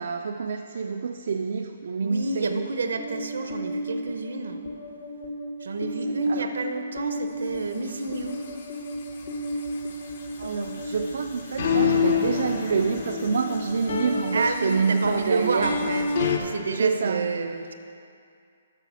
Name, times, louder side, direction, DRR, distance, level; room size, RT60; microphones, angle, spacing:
voice 1, 0.0-2.7 6.0-6.5 10.4-15.9 16.3-16.5 16.8-17.5, right 5 dB, 70° right, 5 dB, 0.3 m, -27 dB
voice 2, 2.0-4.6 5.6-8.4 8.7-8.8 14.3-16.1 16.4-17.7, right 3 dB, 85° right, 6 dB, 0.7 m, -29 dB
sound 1, 3.0-16.4, left 4 dB, 60° left, 0.9 m, -30 dB
6.6 x 6.0 x 6.3 m, 2.5 s
hypercardioid pair, 150°, 0 cm